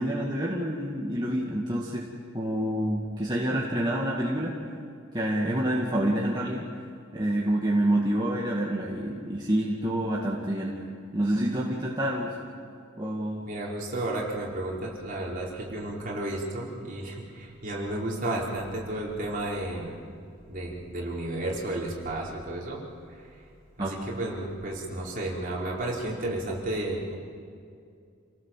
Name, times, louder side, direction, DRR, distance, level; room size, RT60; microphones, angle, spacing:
voice 1, 0.0-2.0 2.3-4.6 5.1-6.7 7.1-10.7 11.1-12.3 13.0-13.5 23.8-23.9, right 1 dB, 20° right, -4 dB, 2.1 m, -27 dB
voice 2, 13.4-19.9 20.5-22.8 23.1-23.4 23.8-27.1, right 1 dB, 45° right, -4 dB, 4.9 m, -32 dB
28.5 x 18.0 x 7.6 m, 2.3 s
head